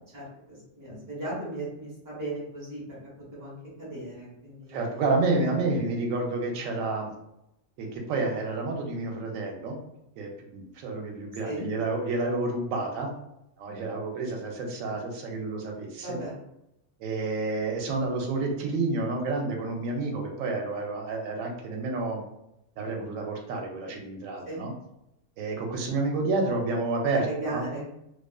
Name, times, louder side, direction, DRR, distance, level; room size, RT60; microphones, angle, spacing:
voice 1, 0.1-3.0 3.3-5.0 11.4-11.7 16.0-16.4 24.5-24.6 27.2-27.9, right 2 dB, 15° right, -8 dB, 1.0 m, -37 dB
voice 2, 4.7-7.1 7.8-9.8 10.2-13.1 13.6-16.2 17.0-22.2 22.8-24.7 25.4-27.3 27.5-27.6, right 3 dB, 90° right, 1 dB, 1.0 m, -29 dB
2.4 x 2.3 x 2.3 m, 0.83 s
omnidirectional pair, 1.3 m